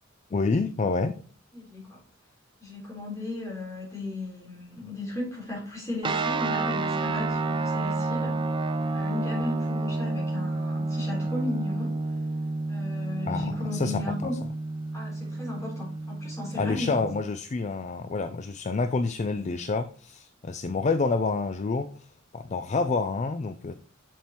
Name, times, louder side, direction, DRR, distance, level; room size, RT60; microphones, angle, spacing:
voice 1, 0.3-1.2 13.3-14.3 16.5-22.1 22.3-23.7, left 3 dB, 35° left, 9 dB, 0.4 m, -28 dB
voice 2, 1.5-2.0 2.6-8.4 8.9-11.9 12.7-14.4 14.9-17.0, left 2 dB, 15° left, -4 dB, 3.7 m, -35 dB
sound 1, 6.0-17.2, right 3 dB, 25° right, 0.4 m, -30 dB
7.4 x 7.1 x 3.0 m, 0.42 s
head